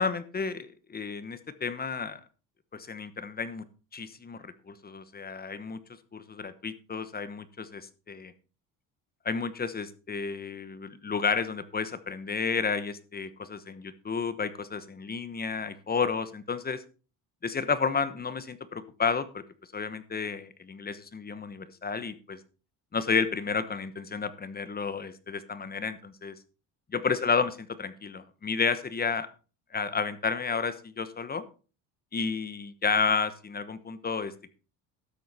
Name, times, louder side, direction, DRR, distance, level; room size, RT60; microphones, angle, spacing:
voice 1, 0.0-2.2 2.7-3.6 3.9-5.8 6.1-8.3 9.2-16.8 17.4-19.4 19.7-22.4 22.9-26.3 26.9-27.5 27.8-29.3 29.7-31.4 32.1-34.5, left 5 dB, 25° left, 14 dB, 1.1 m, -31 dB
13.0 x 7.8 x 4.2 m, 0.35 s
cardioid pair, 105°, 38 cm